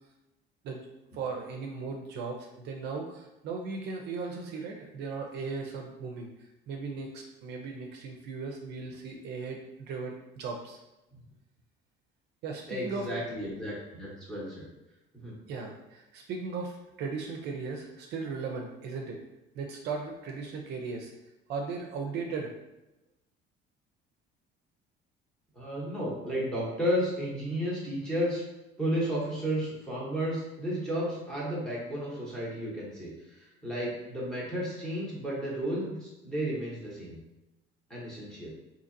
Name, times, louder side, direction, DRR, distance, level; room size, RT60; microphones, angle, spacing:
voice 1, 1.1-6.3 6.7-10.8 12.4-13.1 15.5-19.2 19.6-21.1 21.5-22.5, right 4 dB, 55° right, 1 dB, 0.5 m, -37 dB
voice 2, 12.7-14.7 15.1-15.3 25.5-28.4 28.8-37.2 37.9-38.5, equal, 5° left, -7 dB, 1.0 m, -33 dB
3.8 x 2.8 x 2.6 m, 0.96 s
cardioid pair, 170°, 20 cm